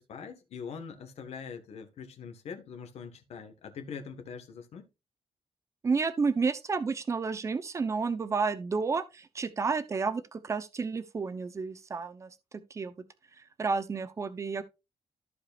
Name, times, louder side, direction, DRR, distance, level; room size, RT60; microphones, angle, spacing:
voice 1, 0.0-4.9, left 6 dB, 75° left, 1.6 m, -43 dB
voice 2, 5.8-12.3 12.7-12.9 13.6-14.6, right 4 dB, 30° right, 0.9 m, -31 dB
14.5 x 4.9 x 2.5 m
wide cardioid pair, 175°, 11 cm